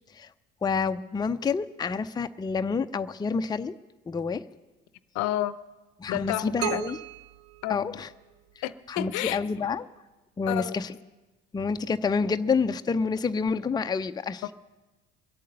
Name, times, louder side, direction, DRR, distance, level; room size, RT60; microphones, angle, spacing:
voice 1, 0.6-3.8 4.1-4.5 6.0-7.0 7.7-8.1 8.9-9.9 10.4-11.0 11.5-14.4, left 5 dB, 15° left, 9 dB, 0.5 m, -28 dB
voice 2, 5.1-5.6 6.1-6.9 7.6-8.0 8.6-9.4 10.5-10.8, left 14 dB, 65° left, 16 dB, 0.6 m, -31 dB
sound 1, 6.6-8.5, right 16 dB, 75° right, 0.5 m, -36 dB
22.5 x 8.4 x 6.6 m, 1.2 s
hypercardioid pair, 60°, 31 cm